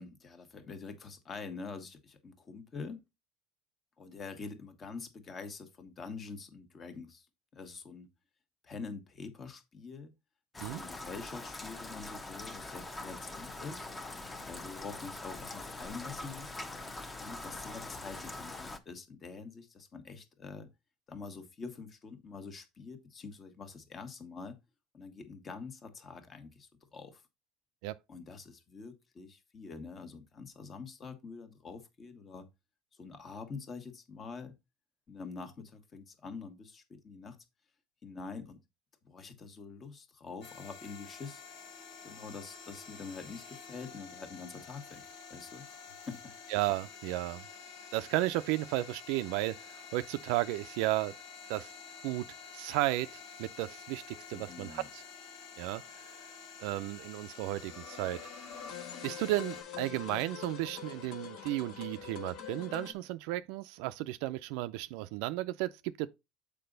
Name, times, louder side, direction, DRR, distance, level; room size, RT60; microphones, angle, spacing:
voice 1, 0.0-3.0 4.0-7.3 7.5-8.1 8.6-10.1 10.6-13.9 14.5-16.6 17.2-20.7 21.1-24.6 24.9-27.2 28.1-32.5 32.9-34.5 35.1-37.4 38.0-38.6 39.0-41.4 42.0-45.0 45.3-46.3 54.3-54.9, left 4 dB, 30° left, 1.4 m, -45 dB
Rain, 10.5-18.8, left 2 dB, 15° left, 0.9 m, -43 dB
sound 1, 40.4-59.6, left 6 dB, 80° left, 2.9 m, -49 dB
voice 2, 46.5-47.4 47.9-51.1 51.5-51.7 52.0-52.3 52.5-55.0 55.6-56.2 56.6-58.2 59.0-66.1, right 17 dB, 75° right, 0.4 m, -34 dB
sound 2, 57.4-62.9, left 8 dB, 60° left, 1.6 m, -45 dB
6.7 x 5.0 x 3.9 m
supercardioid pair, 120°, 0 cm